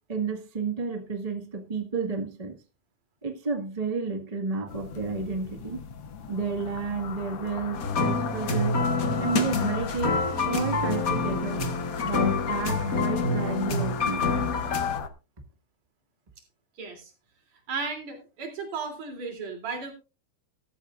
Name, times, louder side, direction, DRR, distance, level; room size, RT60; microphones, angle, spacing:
voice 1, 0.1-2.5 3.2-5.8 6.3-8.7 9.2-11.6 12.0-14.2, right 4 dB, 20° right, 5 dB, 1.0 m, -31 dB
sound 1, 4.7-15.1, left 6 dB, 60° left, 1.8 m, -37 dB
sound 2, 7.7-15.0, left 3 dB, 40° left, 1.4 m, -27 dB
voice 2, 16.8-17.1 17.7-19.9, right 4 dB, 70° right, 3 dB, 4.4 m, -34 dB
15.0 x 13.0 x 2.5 m, 0.31 s
omnidirectional pair, 3.3 m